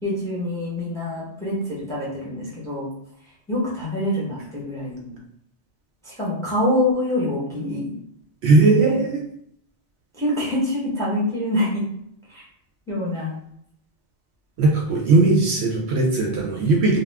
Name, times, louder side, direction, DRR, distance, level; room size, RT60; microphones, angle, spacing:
voice 1, 0.0-2.9 3.5-5.2 6.0-7.9 8.6-9.0 10.1-11.9 12.3-12.4 12.9-13.3, left 1 dB, 5° left, -6 dB, 0.7 m, -25 dB
voice 2, 8.4-9.2 14.6-17.0, right 3 dB, 70° right, -1 dB, 0.8 m, -18 dB
2.3 x 2.2 x 3.3 m, 0.71 s
omnidirectional pair, 1.2 m